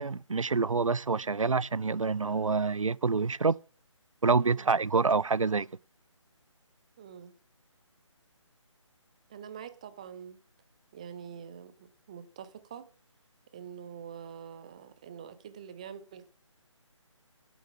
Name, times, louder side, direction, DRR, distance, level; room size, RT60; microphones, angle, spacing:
voice 1, 0.0-3.6 4.2-5.7, right 4 dB, 90° right, 0.4 m, -27 dB
voice 2, 7.0-7.3 9.3-10.4 10.9-12.9 13.5-16.3, right 8 dB, 15° right, 0.4 m, -45 dB
8.7 x 8.2 x 6.0 m
figure-of-eight pair, 150°, 16 cm